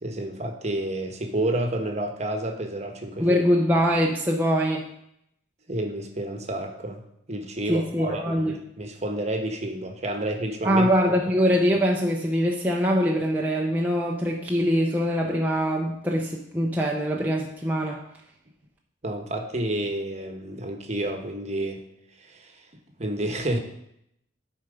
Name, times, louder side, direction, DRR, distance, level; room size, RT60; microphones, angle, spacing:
voice 1, 0.0-3.4 5.7-7.0 7.3-10.9 19.0-21.8 22.2-22.7 23.0-23.6, right 1 dB, 35° right, 5 dB, 1.1 m, -30 dB
voice 2, 3.2-4.9 7.7-8.5 10.6-18.0, equal, 10° right, -2 dB, 0.6 m, -23 dB
11.5 x 4.5 x 5.1 m, 0.76 s
head